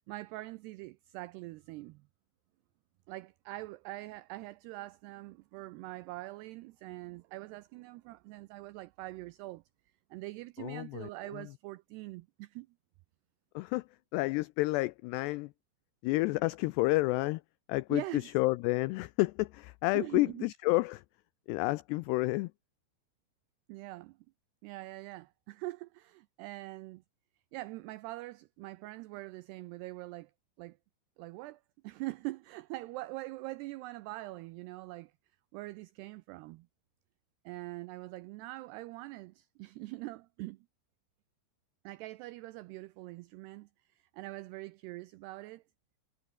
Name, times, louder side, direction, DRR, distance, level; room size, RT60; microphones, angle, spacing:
voice 1, 0.1-2.1 3.1-9.6 10.1-12.7 17.9-18.3 19.9-20.5 23.7-24.2 24.6-27.0 27.5-30.3 30.6-30.8 31.2-35.1 35.5-36.7 37.5-40.7 41.8-45.6, right 19 dB, 85° right, 2.3 m, -43 dB
voice 2, 10.6-11.4 13.6-13.8 14.1-15.5 16.0-17.4 17.7-18.0 18.4-21.0 21.5-22.5, left 21 dB, 90° left, 2.4 m, -30 dB
omnidirectional pair, 5.4 m